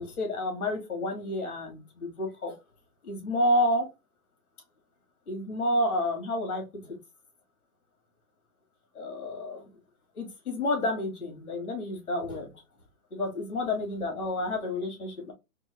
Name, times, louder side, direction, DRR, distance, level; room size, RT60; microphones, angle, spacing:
voice 1, 0.0-2.6 3.0-3.9 5.3-7.0 8.9-9.7 10.2-12.5 13.1-15.3, left 1 dB, 90° left, 2 dB, 2.5 m, -30 dB
4.5 x 2.2 x 4.1 m, 0.25 s
hypercardioid pair, 160°, 43 cm